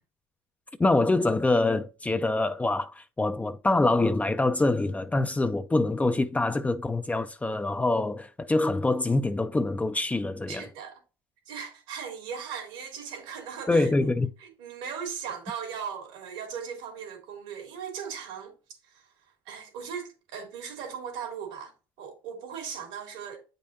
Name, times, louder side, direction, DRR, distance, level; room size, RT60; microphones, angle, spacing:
voice 1, 0.8-10.7 13.7-14.3, left 2 dB, 15° left, 0.5 m, -25 dB
voice 2, 10.5-11.0 11.5-14.1 14.4-18.5 18.8-19.0 19.4-23.4, right 7 dB, 85° right, 3.0 m, -38 dB
8.3 x 5.2 x 2.7 m
supercardioid pair, 85°, 10 cm